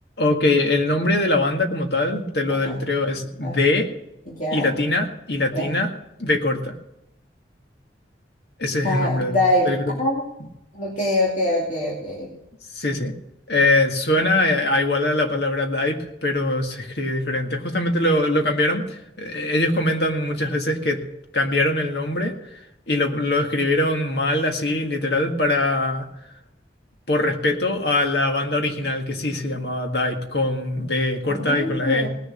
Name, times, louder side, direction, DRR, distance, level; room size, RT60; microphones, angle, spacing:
voice 1, 0.2-3.9 4.5-5.9 6.2-6.7 8.6-9.9 12.7-13.1 13.5-21.0 21.3-22.3 22.9-26.1 27.1-32.1, left 2 dB, 65° left, 3 dB, 1.9 m, -22 dB
voice 2, 2.5-2.8 3.4-3.6 4.3-4.7 5.5-5.7 8.8-10.2 10.7-12.3 31.3-32.1, left 1 dB, 45° left, -4 dB, 2.6 m, -24 dB
18.5 x 6.9 x 6.5 m, 0.85 s
head